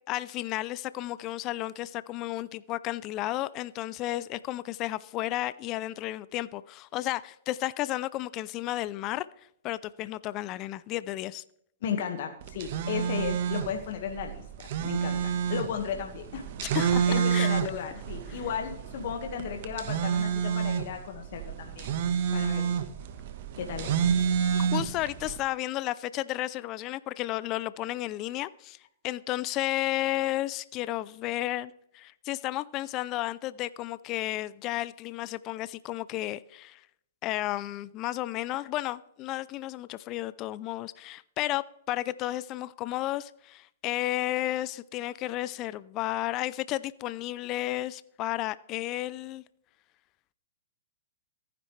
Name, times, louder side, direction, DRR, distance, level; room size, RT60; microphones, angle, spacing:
voice 1, 0.1-9.3 9.6-11.4 16.6-17.5 18.3-18.4 24.7-28.8 29.0-36.8 37.2-49.4, left 16 dB, 35° left, 0.4 m, -33 dB
voice 2, 11.8-16.4 17.1-21.9 22.3-22.7 23.6-24.0, left 7 dB, 60° left, 1.6 m, -35 dB
sound 1, 12.4-25.4, right 7 dB, 55° right, 1.2 m, -29 dB
15.0 x 10.0 x 3.3 m
hypercardioid pair, 130°, 0 cm